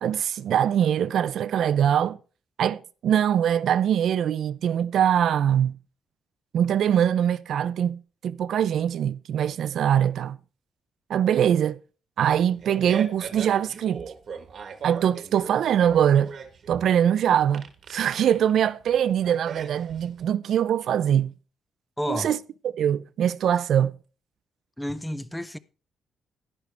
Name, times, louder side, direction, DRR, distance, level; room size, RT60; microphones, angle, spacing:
voice 1, 0.0-2.2 2.6-5.8 6.5-10.4 11.1-11.8 12.2-14.0 14.8-16.3 16.7-17.6 17.9-21.3 22.1-22.4 22.6-24.0, right 9 dB, 60° right, 0.4 m, -23 dB
Fart, 12.3-20.3, right 6 dB, 45° right, 1.2 m, -39 dB
voice 2, 22.0-22.4 24.8-25.6, equal, 5° left, 0.5 m, -31 dB
11.0 x 11.0 x 3.4 m
cardioid pair, 150°, 0 cm